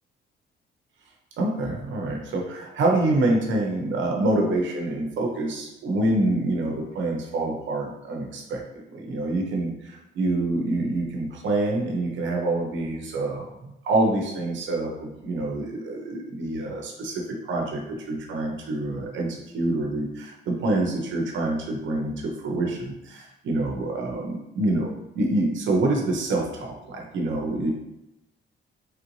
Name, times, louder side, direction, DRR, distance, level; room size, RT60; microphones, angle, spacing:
voice 1, 1.4-8.6 8.9-27.7, right 2 dB, 70° right, 0 dB, 0.8 m, -26 dB
3.3 x 2.5 x 3.1 m, 0.92 s
cardioid pair, 90°, 20 cm